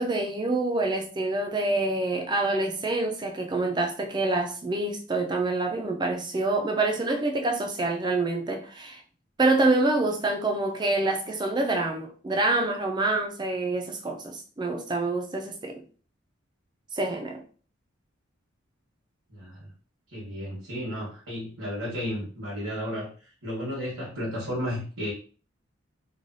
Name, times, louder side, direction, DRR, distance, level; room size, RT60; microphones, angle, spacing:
voice 1, 0.0-9.0 9.4-15.8 16.9-17.4, right 2 dB, 20° right, 0.4 m, -26 dB
voice 2, 19.3-19.7 20.1-23.1 23.4-25.1, equal, 75° right, 1.2 m, -33 dB
3.1 x 2.2 x 2.6 m
head